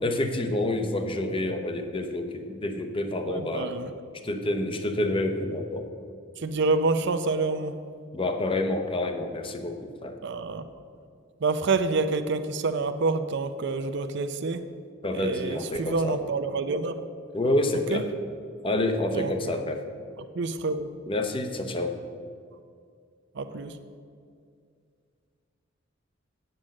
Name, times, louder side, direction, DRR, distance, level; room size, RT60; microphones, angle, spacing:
voice 1, 0.0-3.7 4.2-5.9 8.1-10.2 15.0-16.2 17.3-18.1 18.6-19.9 21.1-22.0, left 1 dB, 25° left, 6 dB, 0.8 m, -28 dB
voice 2, 3.2-3.9 6.4-7.8 10.2-10.7 11.4-14.7 15.1-17.0 17.9-18.0 19.1-19.7 20.3-20.9 23.3-23.8, right 3 dB, 60° right, 9 dB, 0.5 m, -27 dB
8.8 x 8.0 x 6.4 m, 2.3 s
head